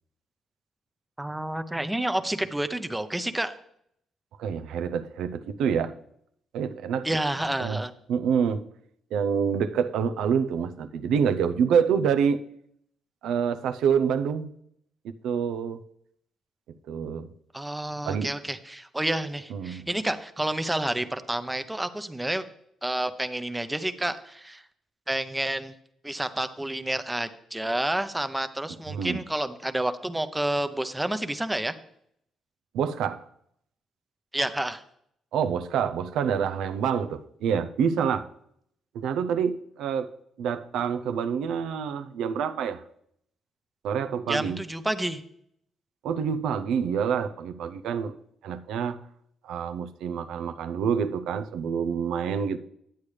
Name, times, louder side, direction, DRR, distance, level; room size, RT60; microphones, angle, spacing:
voice 1, 1.2-3.5 7.0-7.9 17.5-22.4 22.8-24.6 25.1-25.7 26.0-31.8 34.3-34.8 44.3-45.2, right 1 dB, 10° right, 0.7 m, -29 dB
voice 2, 4.4-5.9 6.5-7.1 7.6-7.8 8.1-8.6 9.1-12.4 13.2-14.5 15.2-15.8 16.9-17.3 18.1-18.3 19.5-19.9 28.9-29.2 32.7-33.2 35.3-38.3 38.9-40.1 40.4-42.8 43.8-44.6 46.0-48.1 48.4-49.0 49.4-52.6, right 7 dB, 85° right, 0.5 m, -27 dB
10.5 x 8.4 x 3.3 m
cardioid pair, 90°, 0 cm